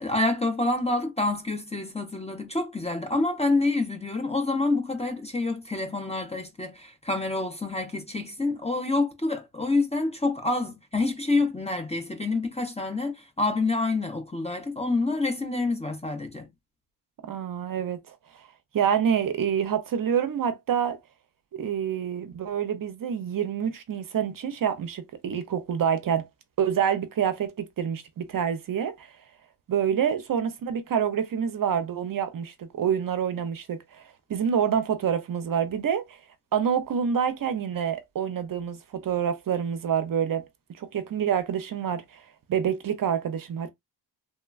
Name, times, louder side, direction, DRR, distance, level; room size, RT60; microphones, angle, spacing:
voice 1, 0.0-16.5, left 2 dB, 15° left, 0.4 m, -27 dB
voice 2, 17.2-18.5 18.7-21.0 21.5-26.3 26.6-29.1 29.7-36.2 36.5-43.7, right 8 dB, 50° right, 0.5 m, -27 dB
3.1 x 2.2 x 2.3 m
wide cardioid pair, 150°, 43 cm